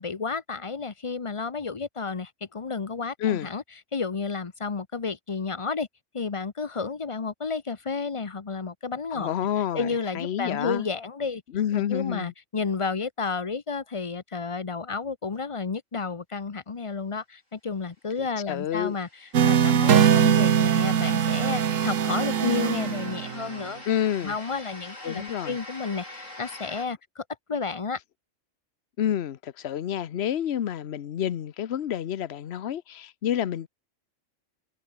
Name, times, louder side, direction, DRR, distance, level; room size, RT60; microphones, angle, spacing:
voice 1, 0.0-3.6 3.9-5.9 6.1-9.3 9.7-11.4 11.7-23.8 24.2-27.2 27.5-28.0, left 4 dB, 30° left, 0.8 m, -31 dB
voice 2, 9.1-10.8 11.5-12.3 18.2-19.0 23.9-24.4 25.0-25.6 29.0-33.7, left 10 dB, 60° left, 1.0 m, -29 dB
sound 1, 18.4-26.9, left 1 dB, 75° left, 8.1 m, -45 dB
sound 2, 19.3-23.6, right 8 dB, 80° right, 1.5 m, -21 dB
open air
omnidirectional pair, 1.3 m